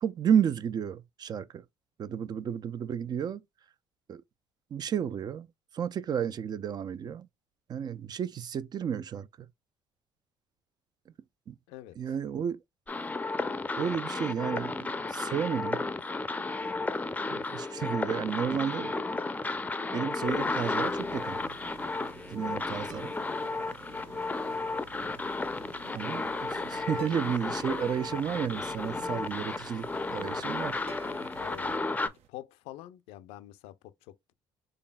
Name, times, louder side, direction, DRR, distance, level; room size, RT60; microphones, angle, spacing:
voice 1, 0.0-1.6 2.0-3.4 4.1-4.2 4.7-5.5 5.7-7.3 7.7-9.5 11.5-11.6 12.0-12.6 13.8-15.8 17.2-18.9 19.9-21.4 22.3-23.1 25.9-30.8, right 8 dB, 40° right, 0.4 m, -32 dB
voice 2, 11.7-12.1 31.2-34.3, left 14 dB, 75° left, 0.5 m, -47 dB
sound 1, 12.9-32.1, left 3 dB, 15° left, 0.5 m, -33 dB
sound 2, 16.1-16.2 18.5-20.2 22.9-24.4 27.0-28.6 30.9-31.7, right 2 dB, 85° right, 1.3 m, -51 dB
sound 3, 20.2-32.3, right 8 dB, 70° right, 0.7 m, -52 dB
4.0 x 3.3 x 2.2 m
hypercardioid pair, 70°, 11 cm